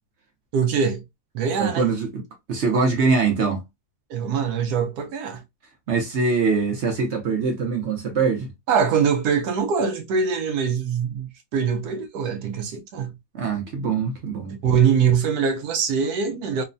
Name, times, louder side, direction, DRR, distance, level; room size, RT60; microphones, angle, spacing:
voice 1, 0.5-1.0 1.3-1.9 4.1-5.4 8.7-13.1 14.6-16.6, right 6 dB, 80° right, 1.1 m, -23 dB
voice 2, 1.6-2.2 2.5-3.6 5.9-8.5 13.3-14.6, right 4 dB, 55° right, 0.8 m, -23 dB
3.1 x 2.1 x 2.4 m
omnidirectional pair, 1.7 m